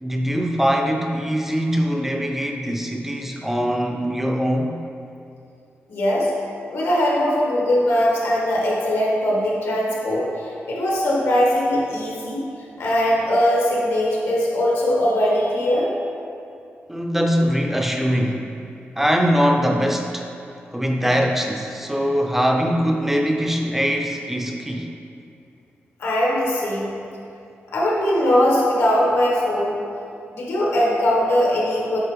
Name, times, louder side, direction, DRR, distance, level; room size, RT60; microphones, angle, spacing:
voice 1, 0.0-4.7 16.9-18.5 19.0-20.3 20.7-24.9, equal, 5° right, 2 dB, 0.4 m, -22 dB
voice 2, 5.9-6.3 6.7-12.4 12.8-15.9 26.0-26.9 27.7-29.7 30.3-32.0, left 1 dB, 80° left, -4 dB, 1.6 m, -20 dB
9.0 x 5.4 x 3.4 m, 2.6 s
wide cardioid pair, 175°, 4 cm